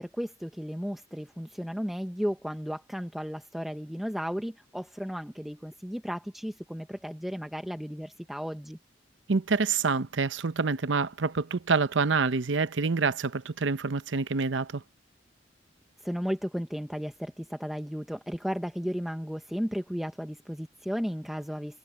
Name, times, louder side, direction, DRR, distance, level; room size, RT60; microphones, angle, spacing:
voice 1, 0.0-8.8 16.0-21.8, equal, ahead, 0.8 m, -34 dB
voice 2, 9.3-14.8, right 4 dB, 90° right, 0.8 m, -27 dB
head